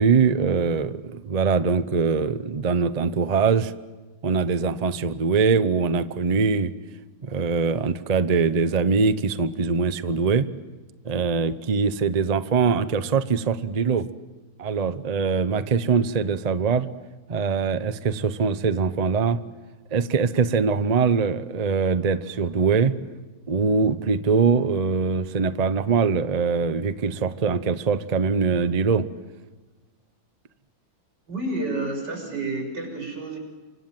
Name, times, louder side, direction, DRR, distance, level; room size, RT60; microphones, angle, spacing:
voice 1, 0.0-3.7 4.2-6.7 7.2-10.5 11.0-14.1 14.6-16.9 17.3-19.4 19.9-22.9 23.5-29.1, right 5 dB, 80° right, 12 dB, 0.3 m, -22 dB
voice 2, 31.3-33.4, right 2 dB, 60° right, 3 dB, 6.8 m, -30 dB
28.5 x 25.0 x 7.6 m, 1.2 s
omnidirectional pair, 2.2 m